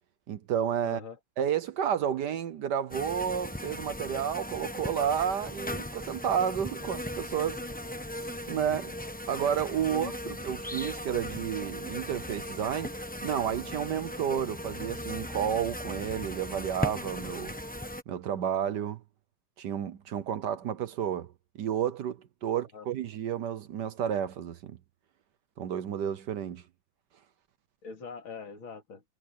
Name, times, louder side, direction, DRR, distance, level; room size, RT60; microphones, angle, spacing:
voice 1, 0.3-1.0 1.4-7.6 8.5-8.9 9.3-12.9 13.2-17.5 18.1-19.0 19.6-21.3 21.6-24.8 25.6-26.6, right 9 dB, 65° right, 1.3 m, -31 dB
voice 2, 0.8-1.2 9.9-10.4 22.5-22.9 27.8-29.0, left 5 dB, 75° left, 3.8 m, -42 dB
sound 1, 2.9-18.0, left 1 dB, 10° left, 0.6 m, -38 dB
omnidirectional pair, 2.2 m